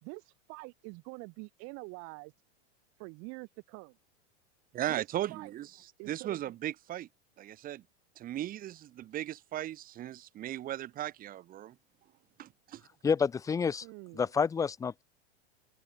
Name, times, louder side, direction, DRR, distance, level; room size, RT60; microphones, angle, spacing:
voice 1, 0.0-2.3 3.0-4.0 4.9-5.0 5.3-5.5 6.0-6.5 13.8-14.3, right 30 dB, 45° right, 2.9 m, -46 dB
voice 2, 4.7-5.7 6.1-7.1 7.4-7.8 8.2-11.7 12.4-12.8, right 13 dB, 25° right, 1.1 m, -37 dB
voice 3, 13.0-13.8 14.1-15.0, left 6 dB, 10° left, 0.6 m, -29 dB
supercardioid pair, 140°, 34 cm